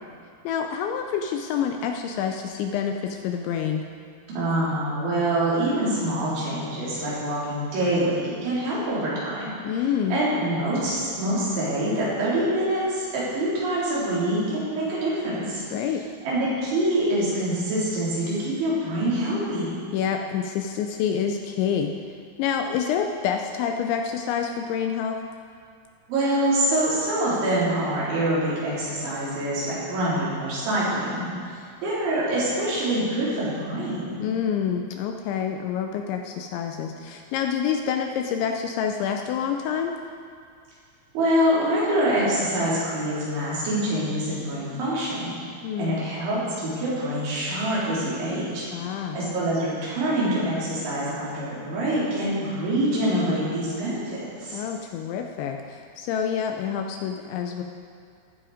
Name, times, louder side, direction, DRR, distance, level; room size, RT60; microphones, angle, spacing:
voice 1, 0.4-3.8 9.6-10.2 15.7-16.0 19.9-21.9 22.4-25.2 34.2-39.9 45.6-46.0 48.7-49.2 54.5-57.6, left 8 dB, 85° left, 4 dB, 2.6 m, -27 dB
voice 2, 4.3-9.5 10.1-15.6 16.2-19.8 26.1-31.3 31.8-34.2 41.1-45.3 45.8-48.6 49.1-54.6, right 1 dB, 65° right, -9 dB, 6.3 m, -25 dB
19.5 x 7.6 x 5.1 m, 2.3 s
omnidirectional pair, 5.9 m